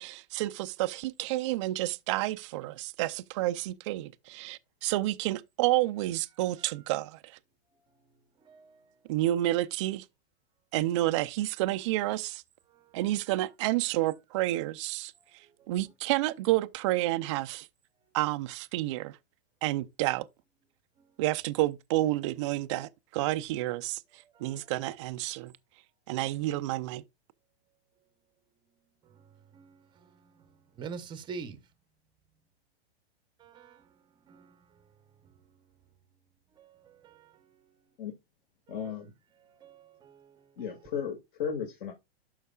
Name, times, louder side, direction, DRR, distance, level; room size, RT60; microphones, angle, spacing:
voice 1, 0.0-7.4 9.1-10.0 10.7-12.4 12.9-15.1 15.7-17.7 18.1-19.2 19.6-20.3 21.2-24.0 24.4-25.5 26.1-27.0, right 16 dB, 30° right, 0.4 m, -30 dB
voice 2, 8.4-8.9 12.7-12.9 15.6-15.7 24.3-24.6 26.2-26.3 29.1-31.6 33.4-33.9 34.3-34.6 36.6-37.4 39.4-40.4, right 5 dB, 15° right, 0.8 m, -46 dB
voice 3, 38.7-39.1 40.6-41.9, left 7 dB, 50° left, 2.1 m, -35 dB
12.0 x 4.6 x 2.3 m
hypercardioid pair, 145°, 32 cm